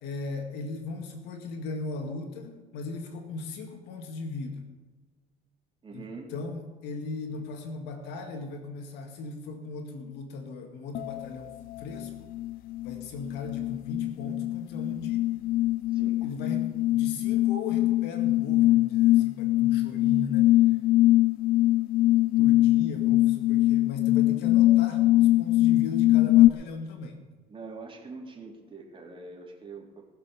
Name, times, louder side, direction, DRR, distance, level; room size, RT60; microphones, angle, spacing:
voice 1, 0.0-4.7 5.9-6.0 6.3-12.3 12.8-15.2 16.2-20.5 22.4-27.2, left 3 dB, 85° left, 4 dB, 2.0 m, -37 dB
voice 2, 5.8-6.3 15.9-16.3 27.5-30.0, right 3 dB, 30° right, -1 dB, 3.6 m, -43 dB
sound 1, 11.0-11.3 11.7-26.5, left 16 dB, 60° left, 0.4 m, -23 dB
19.5 x 6.8 x 6.9 m, 1.3 s
cardioid pair, 110°, 17 cm